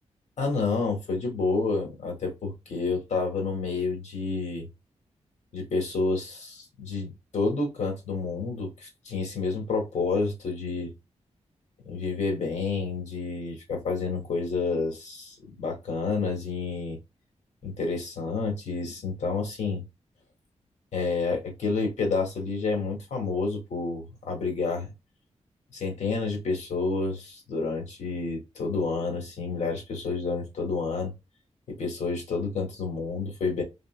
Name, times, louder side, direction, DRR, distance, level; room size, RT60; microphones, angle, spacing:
voice 1, 0.4-4.7 5.5-10.9 11.9-17.0 17.6-19.8 20.9-24.9 25.7-31.1 31.7-33.6, left 4 dB, 90° left, 1.9 m, -29 dB
4.2 x 4.0 x 2.2 m
cardioid pair, 85°, 12 cm